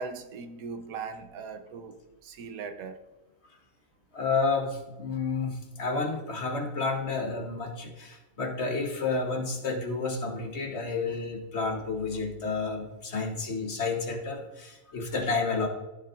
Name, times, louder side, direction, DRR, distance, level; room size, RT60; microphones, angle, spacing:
voice 1, 0.0-1.9 2.2-3.0, right 5 dB, 85° right, 1.3 m, -39 dB
voice 2, 4.1-15.7, left 4 dB, 55° left, 1.4 m, -30 dB
14.0 x 7.2 x 2.5 m
omnidirectional pair, 1.4 m